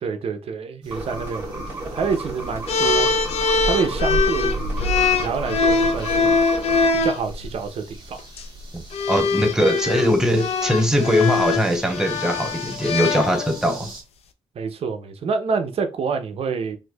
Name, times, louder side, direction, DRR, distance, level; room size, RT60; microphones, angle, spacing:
voice 1, 0.0-4.8 5.2-6.4 7.0-8.2 14.6-16.8, right 5 dB, 65° right, 0.6 m, -27 dB
sound 1, 0.8-14.0, right 1 dB, 45° right, 1.4 m, -35 dB
sound 2, 0.9-6.9, right 1 dB, 20° right, 1.3 m, -33 dB
sound 3, 2.7-7.2 8.2-8.4 8.9-13.7, left 4 dB, 70° left, 0.5 m, -22 dB
voice 2, 9.1-13.9, equal, 5° right, 0.5 m, -21 dB
4.4 x 2.5 x 2.3 m
cardioid pair, 115°, 11 cm